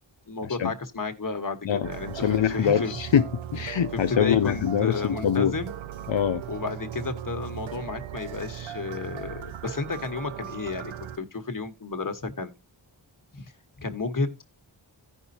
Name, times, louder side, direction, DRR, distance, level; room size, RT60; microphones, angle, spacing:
voice 1, 0.3-3.0 3.9-5.8 6.5-12.5 13.3-13.4 13.8-14.4, left 4 dB, 45° left, 1.5 m, -32 dB
voice 2, 1.6-3.3 3.5-5.5 6.1-6.4, left 9 dB, 80° left, 0.7 m, -24 dB
sound 1, 1.8-11.2, right 10 dB, 85° right, 0.6 m, -38 dB
16.0 x 5.4 x 2.8 m
wide cardioid pair, 70°, 45 cm